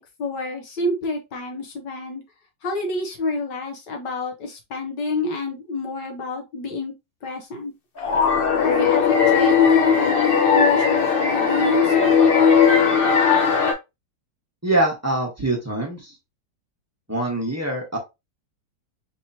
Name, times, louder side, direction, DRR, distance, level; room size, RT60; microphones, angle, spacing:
voice 1, 0.0-2.2 2.6-6.9 7.2-7.7 8.6-12.2, left 2 dB, 70° left, 2 dB, 1.5 m, -28 dB
sound 1, 8.0-13.7, left 6 dB, 45° left, 0.7 m, -17 dB
voice 2, 14.6-16.1 17.1-18.0, right 1 dB, 10° right, -1 dB, 0.9 m, -24 dB
4.7 x 2.9 x 2.7 m, 0.23 s
omnidirectional pair, 2.0 m